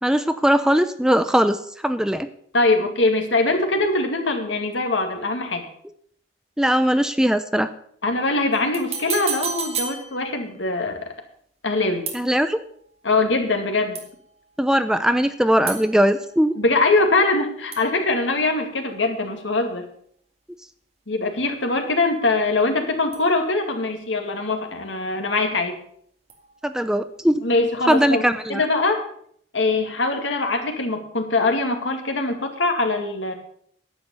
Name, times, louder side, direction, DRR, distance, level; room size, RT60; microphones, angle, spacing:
voice 1, 0.0-2.3 6.6-7.7 12.1-12.6 14.6-16.5 26.6-27.5 27.9-28.7, equal, 5° right, 10 dB, 0.5 m, -20 dB
voice 2, 2.5-5.7 8.0-11.0 11.6-12.1 13.0-14.0 16.6-19.9 21.1-25.8 27.4-28.2 28.5-29.1 29.5-33.3, left 2 dB, 85° left, 4 dB, 2.2 m, -22 dB
sound 1, 8.5-10.6 12.1-12.7 13.9-14.4 15.7-17.4 17.7-18.9 23.1-23.9 26.3-26.9 27.9-28.0, right 6 dB, 35° right, 2.0 m, -34 dB
10.5 x 9.2 x 6.9 m, 0.65 s
head